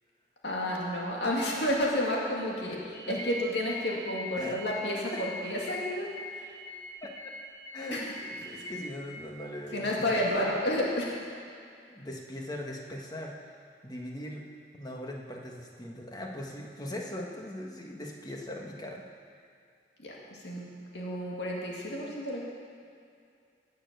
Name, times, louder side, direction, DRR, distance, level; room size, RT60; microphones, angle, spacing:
voice 1, 0.4-2.8 3.1-6.1 6.3-6.5 7.9-8.1 8.5-8.7 9.7-11.2 20.0-20.7 20.9-22.4, left 1 dB, 75° left, -3 dB, 2.2 m, -31 dB
sound 1, 2.9-8.8, left 1 dB, 90° left, 1.5 m, -42 dB
voice 2, 7.0-7.3 7.7-10.5 11.9-13.5 13.8-14.5 14.7-19.0, left 1 dB, 20° left, 0 dB, 1.4 m, -40 dB
18.5 x 6.7 x 6.8 m, 2.4 s
head